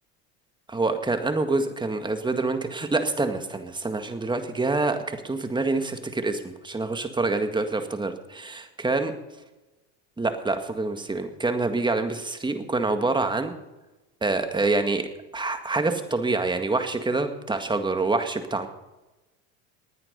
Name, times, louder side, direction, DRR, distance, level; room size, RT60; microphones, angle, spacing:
voice 1, 0.7-9.1 10.2-13.5 14.2-15.0 15.3-18.7, right 3 dB, 10° right, 7 dB, 1.8 m, -26 dB
19.5 x 9.6 x 5.4 m, 1.1 s
supercardioid pair, 105°, 39 cm